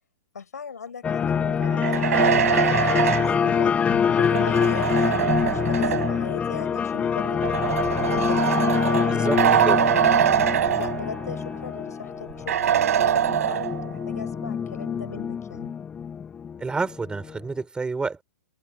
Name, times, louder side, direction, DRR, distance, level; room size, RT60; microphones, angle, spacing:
voice 1, 0.3-7.5 7.9-9.5 10.8-15.8, left 6 dB, 75° left, 7.5 m, -38 dB
sound 1, 1.0-17.4, left 7 dB, 15° left, 0.5 m, -25 dB
sound 2, 1.6-6.3 7.2-11.4 11.7-11.8 12.5-14.0, right 10 dB, 65° right, 4.0 m, -23 dB
voice 2, 16.6-18.2, right 4 dB, 10° right, 5.8 m, -28 dB
open air
figure-of-eight pair, 115°, 9 cm